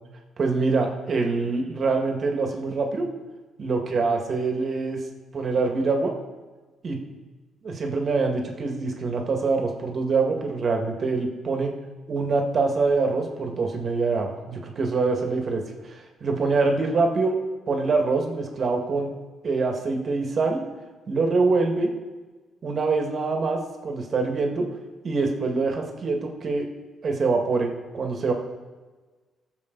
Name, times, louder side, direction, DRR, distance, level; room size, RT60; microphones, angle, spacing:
voice 1, 0.4-3.1 3.6-5.0 5.3-6.1 6.8-7.0 7.6-11.7 12.1-17.4 17.7-19.1 19.4-20.6 21.1-21.9 22.6-24.7 25.0-26.7 27.0-28.3, right 3 dB, 50° right, 3 dB, 2.0 m, -25 dB
18.0 x 7.3 x 4.0 m, 1.3 s
cardioid pair, 90°, 0 cm